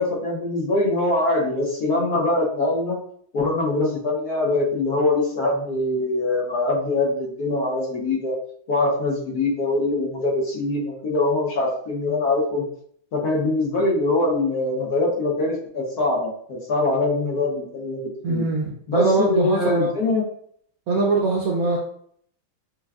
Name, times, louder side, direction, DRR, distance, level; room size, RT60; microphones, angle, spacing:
voice 1, 0.0-3.0 3.3-8.3 8.7-12.6 13.1-18.0 18.3-18.4 18.9-20.2, left 2 dB, 60° left, -3 dB, 1.1 m, -23 dB
voice 2, 18.2-19.9 20.9-21.8, right 3 dB, 85° right, -2 dB, 0.8 m, -22 dB
6.6 x 2.3 x 2.3 m, 0.64 s
omnidirectional pair, 2.3 m